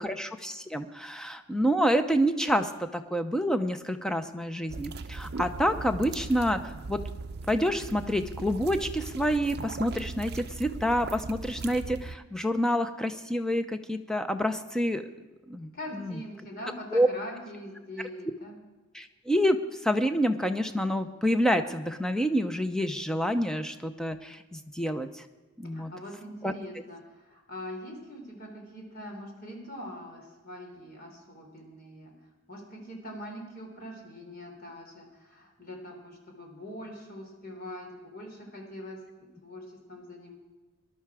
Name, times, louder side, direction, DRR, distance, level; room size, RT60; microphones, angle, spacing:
voice 1, 0.0-6.6 6.9-7.0 7.5-15.0 15.5-16.2 16.9-17.1 18.9-19.6 19.8-25.2 25.6-25.9 26.4-26.5, equal, 5° left, 8 dB, 0.7 m, -28 dB
sound 1, 4.7-12.2, right 3 dB, 50° right, 0.5 m, -39 dB
voice 2, 15.7-18.6 25.7-32.1 32.5-40.3, left 1 dB, 45° left, 1 dB, 3.7 m, -43 dB
19.5 x 11.5 x 4.9 m, 1.2 s
head